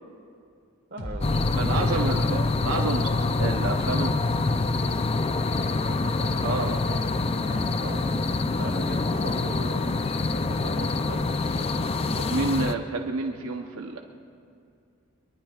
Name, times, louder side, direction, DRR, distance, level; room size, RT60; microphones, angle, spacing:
voice 1, 0.9-2.4 5.6-8.2 8.6-10.1 10.3-11.3, right 2 dB, 55° right, 3 dB, 1.5 m, -40 dB
sound 1, 1.0-8.0 8.5-8.6, equal, 65° left, 3.1 m, -39 dB
sound 2, 1.2-12.7, left 3 dB, 30° left, 0.4 m, -26 dB
voice 2, 1.5-4.3 6.2-6.8 10.3-10.4 12.1-14.0, right 3 dB, 85° right, 2 dB, 0.8 m, -30 dB
23.0 x 22.0 x 2.4 m, 2.4 s
head